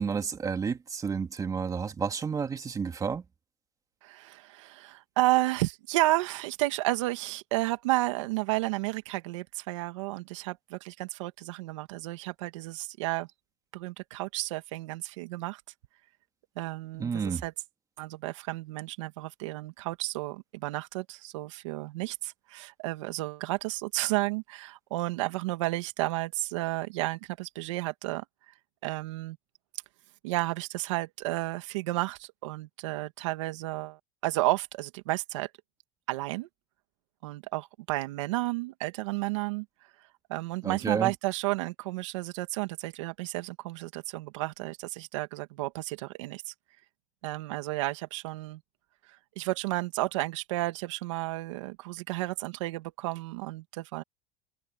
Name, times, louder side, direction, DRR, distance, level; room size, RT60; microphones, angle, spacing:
voice 1, 0.0-3.2 17.0-17.4 40.6-41.1, right 6 dB, 20° right, 2.5 m, -31 dB
voice 2, 4.0-13.3 13.7-15.6 16.6-17.5 18.0-28.2 28.8-29.4 30.2-35.5 36.1-36.5 37.2-39.7 40.3-46.5 47.2-48.6 49.4-54.0, right 19 dB, 85° right, 2.3 m, -32 dB
supercardioid pair, 120°, 16 cm